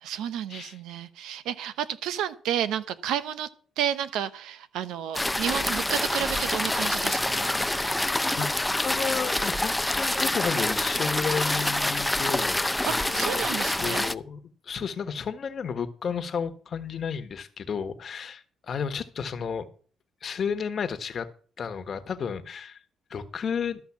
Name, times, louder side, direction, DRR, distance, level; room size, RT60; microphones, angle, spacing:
voice 1, 0.0-3.5 3.8-7.5 12.8-14.0, right 10 dB, 90° right, 0.9 m, -31 dB
sound 1, 5.1-14.1, left 1 dB, 10° left, 0.5 m, -26 dB
voice 2, 8.8-13.4 13.8-19.7 20.2-21.3 21.6-22.8 23.1-23.8, left 6 dB, 50° left, 1.3 m, -32 dB
13.5 x 5.6 x 7.1 m
cardioid pair, 90°, 0 cm